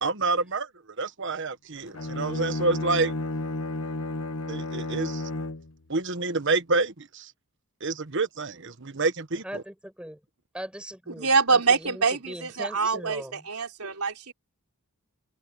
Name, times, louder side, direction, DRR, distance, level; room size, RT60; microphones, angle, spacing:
voice 1, 0.0-0.7 1.0-3.1 4.5-5.3 5.9-7.3 7.8-9.6, right 3 dB, 55° right, 1.3 m, -28 dB
Bowed string instrument, 1.9-5.7, left 2 dB, 65° left, 1.4 m, -32 dB
voice 2, 9.4-10.2 10.5-13.5, equal, 5° right, 6.5 m, -40 dB
voice 3, 11.2-14.3, right 4 dB, 85° right, 3.7 m, -25 dB
open air
head